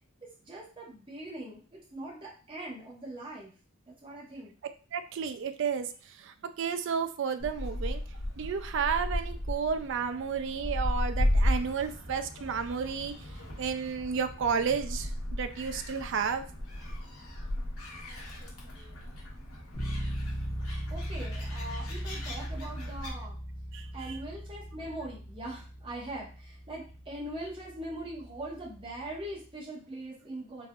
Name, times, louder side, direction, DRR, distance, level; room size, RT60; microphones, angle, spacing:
voice 1, 0.2-3.5 3.9-4.5 20.9-23.4 23.9-30.7, right 1 dB, 25° right, -4 dB, 1.0 m, -41 dB
voice 2, 4.9-5.9 6.2-8.0 8.4-13.1 13.6-16.4 23.7-23.9, right 6 dB, 60° right, 9 dB, 0.3 m, -32 dB
Gull seagull, 7.4-23.1, left 1 dB, 85° left, 1.1 m, -35 dB
Bass guitar, 19.7-29.4, equal, 40° left, 1.0 m, -39 dB
4.1 x 2.5 x 2.3 m, 0.37 s
head